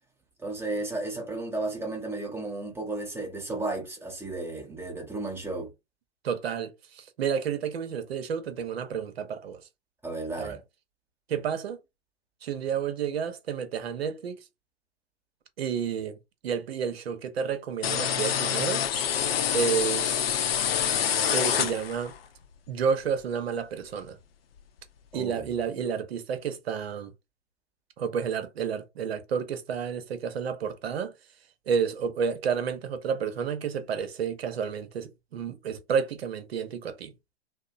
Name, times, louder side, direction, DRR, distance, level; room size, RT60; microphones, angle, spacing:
voice 1, 0.4-5.7 10.0-10.5 25.1-25.5, right 2 dB, 5° right, 1.0 m, -33 dB
voice 2, 6.2-9.6 10.4-10.6 11.3-11.8 12.4-14.4 15.6-16.2 16.4-18.9 19.5-20.2 21.3-22.1 22.7-24.2 25.1-27.1 28.0-31.1 31.7-37.1, right 7 dB, 60° right, 0.8 m, -30 dB
sound 1, 17.8-22.2, left 9 dB, 55° left, 0.6 m, -26 dB
2.8 x 2.0 x 2.5 m
figure-of-eight pair, 115°, 35 cm